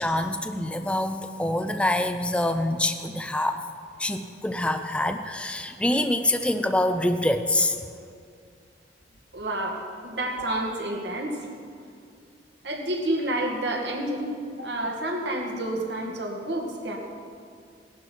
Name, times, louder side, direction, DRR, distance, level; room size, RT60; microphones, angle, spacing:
voice 1, 0.0-3.6 4.0-7.8, left 1 dB, 5° left, 7 dB, 0.5 m, -25 dB
voice 2, 9.3-11.5 12.6-17.0, right 1 dB, 70° right, 0 dB, 2.2 m, -29 dB
18.5 x 12.0 x 4.7 m, 2.3 s
head